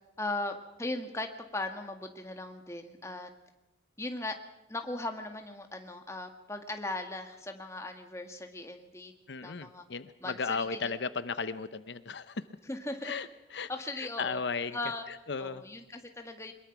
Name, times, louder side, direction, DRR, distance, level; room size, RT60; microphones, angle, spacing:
voice 1, 0.2-3.3 4.0-4.4 4.7-9.1 9.4-9.8 10.2-10.8 12.7-13.1 13.7-14.4 14.7-15.0 15.4-16.5, left 2 dB, 15° left, 5 dB, 1.7 m, -38 dB
voice 2, 9.3-12.4 13.0-13.7 13.9-14.8 15.1-15.6, left 5 dB, 70° left, 13 dB, 0.7 m, -35 dB
22.5 x 21.5 x 6.0 m, 0.95 s
head